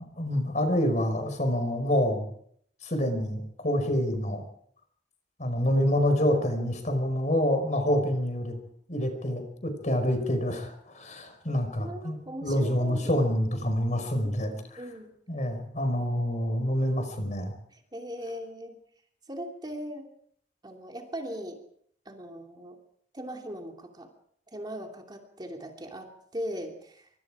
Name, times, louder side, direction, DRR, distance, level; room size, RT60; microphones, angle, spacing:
voice 1, 0.2-2.3 2.8-4.4 5.4-8.5 8.9-12.2 12.4-14.5 15.3-17.5, equal, 45° left, 7 dB, 5.1 m, -27 dB
voice 2, 11.8-13.1 14.2-15.1 17.7-18.8 19.3-20.1 20.6-21.6 22.0-22.8 23.1-24.1 24.5-27.1, equal, 25° right, 2 dB, 2.8 m, -39 dB
25.0 x 24.5 x 5.0 m, 0.65 s
head